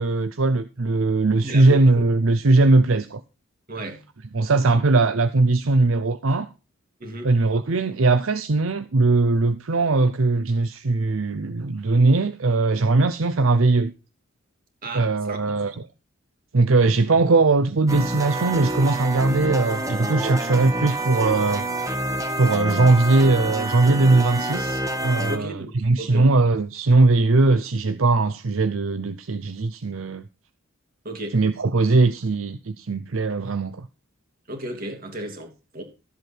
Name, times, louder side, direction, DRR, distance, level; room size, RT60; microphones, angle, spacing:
voice 1, 0.0-3.2 4.3-6.5 7.2-13.9 14.9-15.8 16.5-21.7 22.4-25.5 25.8-30.2 31.3-33.9, right 3 dB, 70° right, 0.7 m, -20 dB
voice 2, 1.4-1.9 3.7-4.0 7.0-7.3 14.8-15.7 20.2-20.4 25.3-26.3 31.0-31.4 34.5-35.8, right 1 dB, 45° right, 3.1 m, -34 dB
sound 1, 17.9-25.4, right 1 dB, 15° right, 1.6 m, -27 dB
13.0 x 8.0 x 4.4 m
head